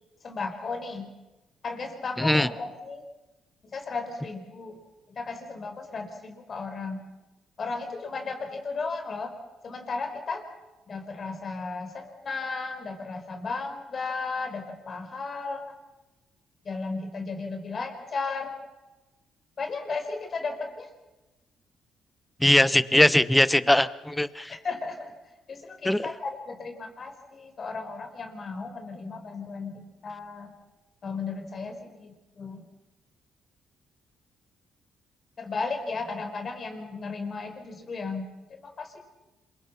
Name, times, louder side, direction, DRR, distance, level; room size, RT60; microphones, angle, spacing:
voice 1, 0.2-1.2 1.6-3.0 3.6-4.8 5.1-7.0 7.6-9.3 9.6-10.4 10.9-15.6 16.6-18.5 19.6-20.9 24.5-25.1 25.5-30.5 31.0-32.7 35.4-39.0, left 4 dB, 45° left, 5 dB, 4.5 m, -35 dB
voice 2, 2.2-2.5 22.4-24.5 25.8-26.0, left 1 dB, 5° left, 16 dB, 0.9 m, -21 dB
27.0 x 23.0 x 5.8 m, 1.1 s
cardioid pair, 90°, 0 cm